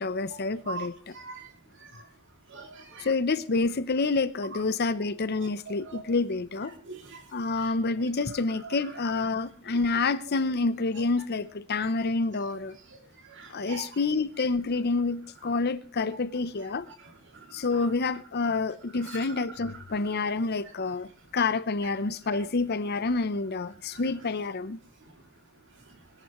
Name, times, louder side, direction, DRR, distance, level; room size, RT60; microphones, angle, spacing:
voice 1, 0.0-1.1 3.0-6.7 7.3-12.8 13.5-16.9 17.5-24.8, left 3 dB, 50° left, 0.7 m, -28 dB
voice 2, 1.1-1.5 1.8-2.0 2.5-3.1 5.7-6.0 6.8-7.2 7.5-7.7 9.9-10.0 11.8-11.9 12.9-13.9 17.3-17.5 19.1-19.5 20.0-20.1 22.3-22.4 23.9-24.0, right 4 dB, 60° right, 2.6 m, -43 dB
21.5 x 11.0 x 3.1 m
head